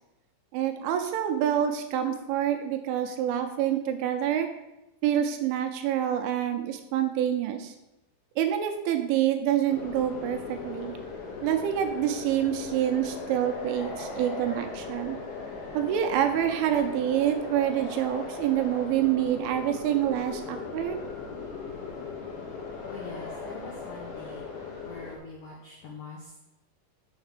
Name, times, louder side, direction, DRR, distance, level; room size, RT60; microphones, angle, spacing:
voice 1, 0.5-4.5 5.0-7.7 8.4-10.9 11.4-15.2 15.7-21.0, right 10 dB, 80° right, 6 dB, 3.0 m, -27 dB
sound 1, 9.7-25.2, left 4 dB, 60° left, 3.0 m, -38 dB
voice 2, 22.9-24.4 24.8-26.4, left 4 dB, 80° left, -2 dB, 1.8 m, -44 dB
7.3 x 5.6 x 6.7 m, 0.94 s
omnidirectional pair, 5.8 m